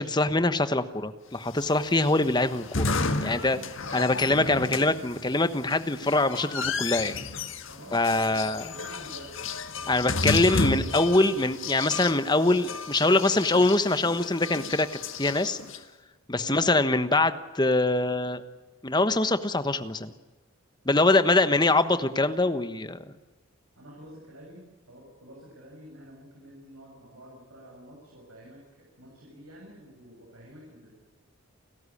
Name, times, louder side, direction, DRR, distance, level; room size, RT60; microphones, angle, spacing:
voice 1, 0.0-3.6 3.9-7.1 7.9-8.7 9.9-14.9 15.2-15.6 16.3-18.4 18.8-20.1 20.8-23.0, left 2 dB, 20° left, 11 dB, 1.2 m, -24 dB
sound 1, 1.5-15.8, left 3 dB, 65° left, 1.7 m, -32 dB
voice 2, 3.2-4.0 4.4-4.6 7.7-10.5 16.4-16.6 20.9-21.8 23.8-30.9, right 1 dB, 85° right, -2 dB, 7.7 m, -49 dB
30.0 x 14.0 x 10.0 m, 1.3 s
head